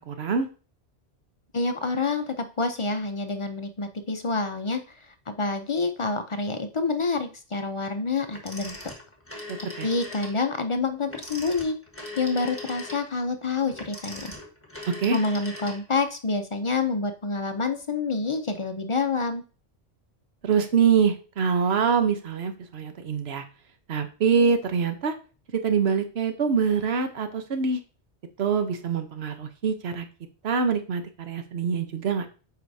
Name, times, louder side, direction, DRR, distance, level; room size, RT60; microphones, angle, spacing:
voice 1, 0.1-0.5 9.8-9.9 15.0-15.2 20.4-23.4 23.9-25.1 25.6-27.8 28.4-30.1 30.4-32.3, right 6 dB, 70° right, 8 dB, 1.1 m, -24 dB
voice 2, 1.5-4.8 5.3-8.8 9.6-11.8 12.2-14.3 15.1-19.4, left 3 dB, 35° left, 7 dB, 0.5 m, -27 dB
Telephone, 8.3-10.4 11.0-16.1, left 2 dB, 10° left, 1.4 m, -40 dB
7.8 x 4.9 x 2.7 m, 0.35 s
omnidirectional pair, 1.1 m